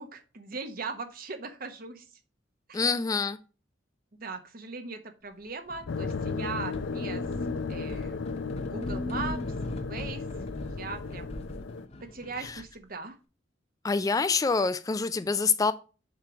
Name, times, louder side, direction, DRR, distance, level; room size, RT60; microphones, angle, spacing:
voice 1, 0.0-2.0 2.7-2.8 4.2-7.2 7.7-8.2 8.6-9.4 9.8-10.2 10.6-11.4 12.1-13.2, right 4 dB, 50° right, 1.1 m, -39 dB
voice 2, 2.7-3.4 12.4-12.6 13.8-15.7, left 4 dB, 20° left, 0.3 m, -26 dB
sound 1, 5.7-6.4 6.7-12.8, left 1 dB, 35° left, 0.8 m, -41 dB
sound 2, 5.9-11.9, left 4 dB, 85° left, 0.5 m, -35 dB
sound 3, 6.9-7.6 8.7-9.5, left 1 dB, 5° right, 0.8 m, -38 dB
7.4 x 3.1 x 6.1 m
head